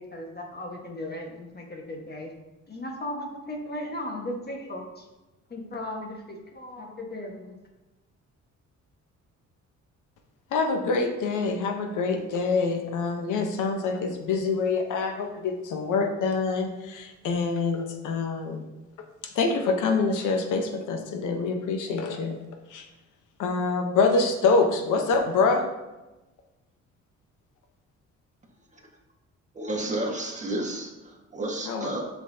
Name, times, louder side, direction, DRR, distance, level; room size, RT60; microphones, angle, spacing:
voice 1, 0.0-2.3 2.7-5.0 5.5-7.6, left 1 dB, 35° left, 1 dB, 1.5 m, -36 dB
voice 2, 10.5-18.6 19.2-22.4 22.7-22.9 23.4-25.7 31.6-31.9, left 4 dB, 85° left, 4 dB, 1.1 m, -25 dB
voice 3, 29.6-32.0, right 1 dB, 25° right, -1 dB, 1.7 m, -31 dB
7.7 x 5.9 x 2.8 m, 1.0 s
cardioid pair, 90°, 30 cm